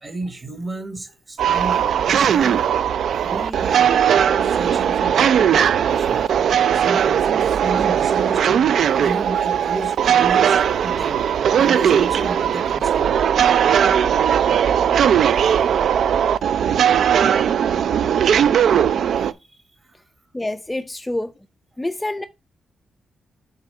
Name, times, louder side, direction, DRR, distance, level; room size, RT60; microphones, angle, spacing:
voice 1, 0.0-3.9 4.4-6.3 6.6-13.2 15.2-15.9 19.3-19.4 19.8-19.9, right 2 dB, 25° right, 1.1 m, -33 dB
sound 1, 1.4-19.3, right 8 dB, 70° right, 0.3 m, -18 dB
voice 2, 20.3-21.3 21.8-22.3, left 1 dB, 10° left, 0.3 m, -26 dB
6.7 x 3.6 x 5.2 m
wide cardioid pair, 150°, 0 cm